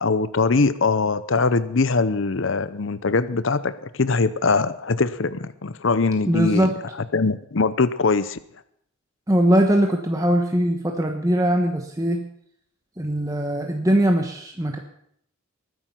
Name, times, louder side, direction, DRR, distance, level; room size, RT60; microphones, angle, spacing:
voice 1, 0.0-6.7 7.1-8.4, left 4 dB, 65° left, 14 dB, 0.7 m, -22 dB
voice 2, 6.3-6.8 9.3-12.2 13.0-14.8, equal, 15° right, 2 dB, 1.2 m, -21 dB
20.5 x 9.6 x 5.8 m, 0.70 s
head